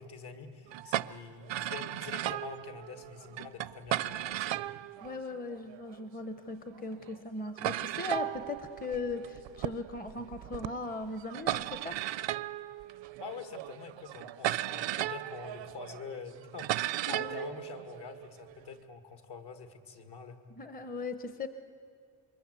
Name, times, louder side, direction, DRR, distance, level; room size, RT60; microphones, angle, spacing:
voice 1, 0.0-4.6 13.2-20.4, left 5 dB, 65° left, 7 dB, 2.2 m, -45 dB
sound 1, 0.7-6.0 6.8-6.9 7.0-7.2 7.6-18.7, right 14 dB, 75° right, 0.6 m, -36 dB
voice 2, 5.0-12.1 17.1-17.5 20.5-21.5, left 3 dB, 20° left, 9 dB, 0.8 m, -39 dB
27.5 x 23.5 x 8.2 m, 2.2 s
wide cardioid pair, 175°, 44 cm